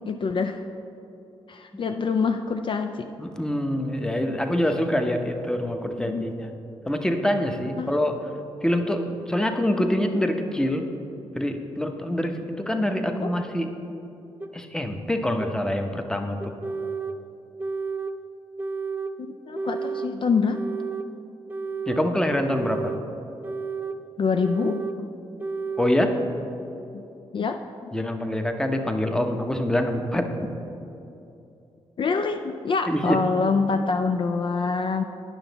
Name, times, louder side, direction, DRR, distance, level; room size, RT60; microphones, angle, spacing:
voice 1, 0.1-0.6 1.5-3.1 6.1-6.3 7.8-7.9 13.2-13.3 19.2-20.6 24.2-25.1 26.9-27.1 27.3-27.9 32.0-35.0, left 4 dB, 50° left, 6 dB, 0.4 m, -26 dB
voice 2, 3.2-6.5 6.9-8.3 8.6-10.9 11.4-13.7 14.5-16.5 21.9-22.9 25.8-26.2 27.9-30.3 32.9-33.2, left 1 dB, 5° left, 5 dB, 0.8 m, -25 dB
sound 1, 14.4-14.5 15.4-15.5 16.4-17.2 17.6-18.2 18.6-19.1 19.6-20.1 20.5-21.1 21.5-22.1 22.5-23.0 23.4-24.0 24.4-25.0 25.4-26.0, right 4 dB, 15° right, 0.4 m, -31 dB
8.8 x 5.7 x 4.0 m, 2.8 s
supercardioid pair, 55°, 11 cm